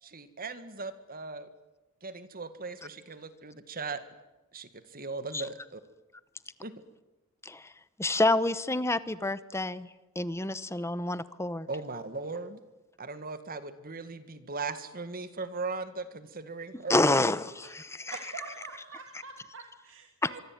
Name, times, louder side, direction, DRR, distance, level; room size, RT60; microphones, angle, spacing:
voice 1, 0.0-1.5 2.0-4.0 4.5-5.8 6.6-6.7 11.7-12.6 13.0-16.9, right 3 dB, 40° right, 11 dB, 2.0 m, -38 dB
voice 2, 8.0-9.9 10.2-11.7 16.9-18.2 20.2-20.3, left 2 dB, 10° left, 15 dB, 0.9 m, -28 dB
voice 3, 18.1-20.4, right 4 dB, 60° right, 4 dB, 2.7 m, -45 dB
25.0 x 24.0 x 9.4 m, 1.0 s
head